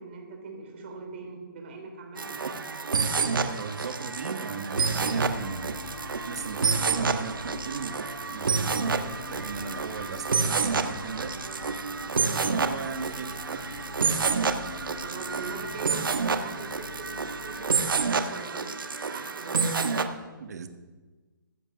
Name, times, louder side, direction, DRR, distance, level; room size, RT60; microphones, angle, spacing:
voice 1, 0.0-2.8 15.0-20.0, right 4 dB, 30° right, 2 dB, 3.3 m, -42 dB
sound 1, 2.2-20.0, right 5 dB, 75° right, 1.3 m, -29 dB
voice 2, 3.4-5.8 6.3-11.4 12.3-13.4 20.4-20.7, right 5 dB, 50° right, 8 dB, 1.4 m, -38 dB
sound 2, 5.3-18.1, left 4 dB, 90° left, 1.1 m, -44 dB
15.5 x 10.0 x 6.2 m, 1.3 s
hypercardioid pair, 165°, 11 cm